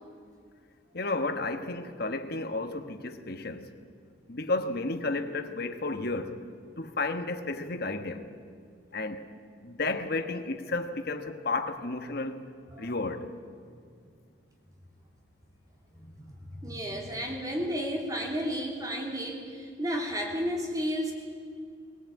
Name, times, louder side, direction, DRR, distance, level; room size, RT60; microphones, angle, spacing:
voice 1, 0.9-3.7 4.3-6.4 6.8-8.3 8.9-9.2 9.6-12.4 12.8-13.3, left 2 dB, 50° left, 1.3 m, -32 dB
voice 2, 15.9-21.1, equal, 20° right, 3.1 m, -33 dB
21.5 x 17.5 x 8.5 m
head